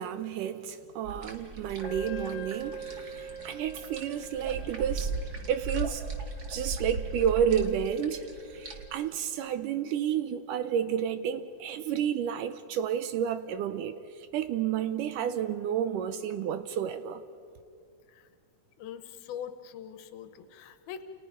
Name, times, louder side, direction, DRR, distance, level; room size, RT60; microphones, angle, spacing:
voice 1, 0.0-6.0 6.5-8.2 8.5-17.2, right 9 dB, 75° right, 2.0 m, -31 dB
sound 1, 1.0-8.9, right 3 dB, 45° right, 1.3 m, -38 dB
Wind instrument woodwind instrument, 1.8-9.1, right 3 dB, 30° left, 2.7 m, -45 dB
voice 2, 18.8-21.0, left 9 dB, 85° left, 3.0 m, -42 dB
30.0 x 29.0 x 5.1 m
omnidirectional pair, 4.3 m